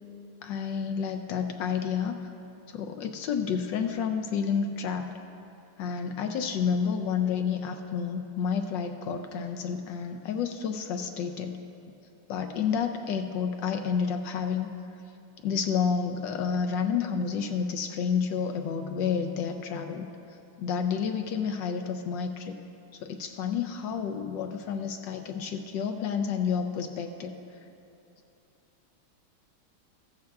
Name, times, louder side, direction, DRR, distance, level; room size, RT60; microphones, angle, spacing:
voice 1, 0.4-2.2 2.7-5.1 5.8-11.6 12.3-14.7 15.4-20.1 20.6-22.6 22.9-27.3, left 6 dB, 75° left, 5 dB, 1.1 m, -30 dB
15.5 x 14.0 x 2.3 m, 2.7 s
omnidirectional pair, 2.4 m